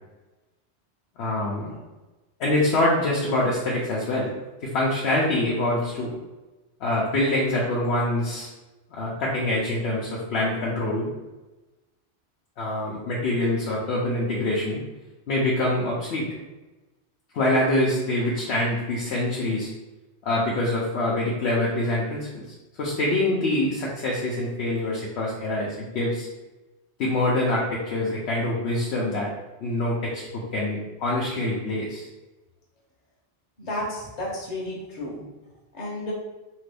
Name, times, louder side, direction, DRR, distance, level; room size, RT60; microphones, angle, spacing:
voice 1, 1.2-1.8 2.4-4.3 4.6-6.2 6.8-8.5 8.9-11.1 12.6-14.8 15.3-16.2 17.3-19.7 20.2-22.4 22.8-26.3 27.0-29.3 29.6-32.1, left 1 dB, 75° left, -4 dB, 0.9 m, -25 dB
voice 2, 33.6-35.3 35.7-36.1, left 1 dB, 40° left, -4 dB, 0.9 m, -32 dB
2.9 x 2.4 x 3.3 m, 1.1 s
omnidirectional pair, 1.1 m